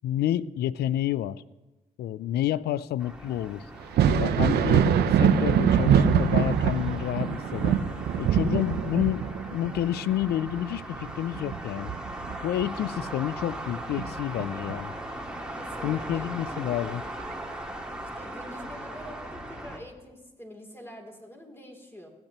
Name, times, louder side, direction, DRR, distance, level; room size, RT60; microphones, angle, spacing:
voice 1, 0.0-1.4 2.0-3.7 4.1-4.9 5.1-7.8 8.2-11.9 12.4-14.9 15.8-17.0, left 12 dB, 75° left, 18 dB, 0.4 m, -29 dB
sound 1, 3.0-19.8, right 1 dB, 5° right, 2.1 m, -39 dB
Thunder, 3.8-13.1 13.5-14.7 16.3-16.4 17.2-17.3, right 8 dB, 75° right, 0.6 m, -24 dB
voice 2, 15.5-16.3 18.0-22.1, equal, 15° left, 1 dB, 3.2 m, -45 dB
16.5 x 8.9 x 3.0 m, 1.1 s
supercardioid pair, 50°, 17 cm